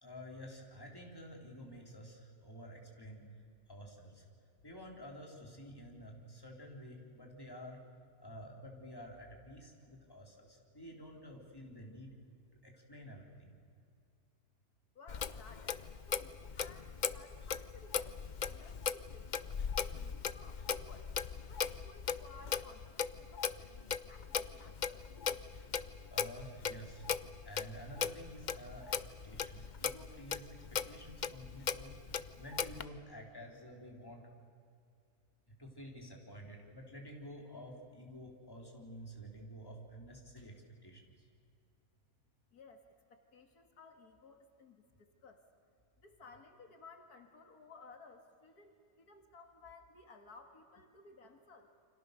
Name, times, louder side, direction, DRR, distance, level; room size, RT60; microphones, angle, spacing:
voice 1, 0.0-4.2 4.6-7.8 8.2-12.1 12.6-13.6 26.1-27.1 27.4-28.9 29.2-31.9 32.4-34.2 35.6-40.5 40.8-41.2, equal, 15° left, 0 dB, 4.0 m, -50 dB
voice 2, 15.0-19.5 19.8-21.1 21.5-25.1 42.5-45.4 46.0-51.7, left 3 dB, 75° left, 5 dB, 2.3 m, -58 dB
Clock, 15.1-32.8, left 7 dB, 50° left, 0.5 m, -39 dB
29.5 x 26.0 x 6.8 m, 2.4 s
omnidirectional pair, 1.7 m